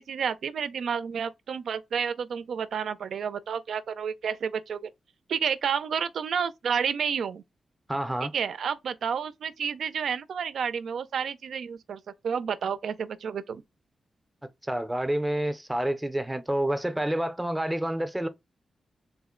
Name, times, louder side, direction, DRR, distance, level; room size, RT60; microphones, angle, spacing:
voice 1, 0.0-4.9 5.3-7.4 8.2-13.6, right 7 dB, 80° right, 0.4 m, -30 dB
voice 2, 7.9-8.3 14.6-18.3, right 1 dB, 10° right, 0.5 m, -28 dB
3.7 x 2.0 x 3.6 m
wide cardioid pair, 120°, 0 cm